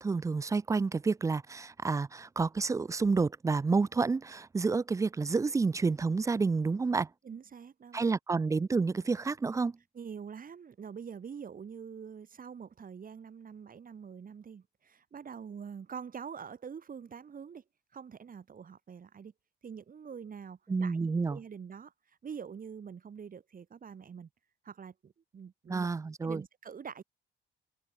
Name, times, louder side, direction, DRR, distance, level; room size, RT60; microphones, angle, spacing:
voice 1, 0.0-7.1 7.9-9.8 20.7-21.4 25.7-26.4, right 4 dB, 15° right, 0.3 m, -29 dB
voice 2, 7.2-8.0 9.9-17.6 17.9-19.3 19.6-21.9 22.2-24.3 24.6-25.9 26.2-27.0, right 7 dB, 45° right, 2.9 m, -45 dB
cardioid pair, 90°, 20 cm